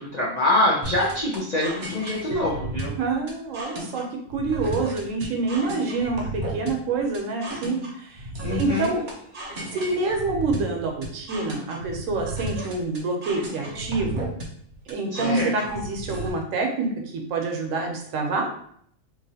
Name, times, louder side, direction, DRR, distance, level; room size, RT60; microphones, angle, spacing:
voice 1, 0.0-3.0 8.4-9.0 15.1-15.5, left 1 dB, 50° left, -6 dB, 0.5 m, -25 dB
sound 1, 0.8-16.3, right 1 dB, 45° right, 0.7 m, -34 dB
voice 2, 3.0-4.0 4.3-9.0 9.7-14.3 14.9-18.5, right 3 dB, 75° right, 2 dB, 1.0 m, -27 dB
3.0 x 2.5 x 2.7 m, 0.65 s
omnidirectional pair, 1.4 m